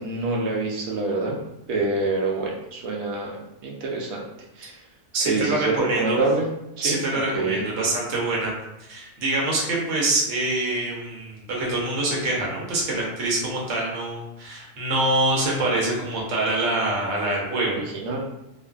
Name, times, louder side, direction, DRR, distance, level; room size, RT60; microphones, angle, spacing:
voice 1, 0.0-1.4 1.7-4.2 4.6-4.8 5.3-6.5 6.8-7.6 17.6-18.2, right 3 dB, 90° right, -2 dB, 1.0 m, -26 dB
voice 2, 5.1-6.2 6.8-8.5 8.9-17.8, right 2 dB, 65° right, -4 dB, 1.1 m, -25 dB
2.6 x 2.4 x 2.2 m, 0.89 s
omnidirectional pair, 1.4 m